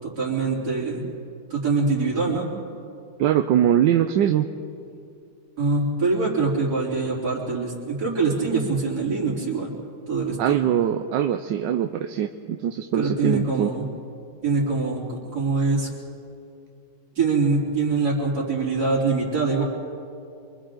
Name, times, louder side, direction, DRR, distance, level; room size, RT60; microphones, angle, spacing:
voice 1, 0.0-1.0 1.5-2.5 5.6-9.7 10.1-10.6 13.0-13.8 14.4-15.9 17.2-19.6, right 4 dB, 60° right, -7 dB, 4.2 m, -24 dB
voice 2, 3.2-4.5 10.4-13.7, right 10 dB, 85° right, 6 dB, 1.4 m, -22 dB
28.5 x 24.5 x 3.9 m, 2.5 s
omnidirectional pair, 1.9 m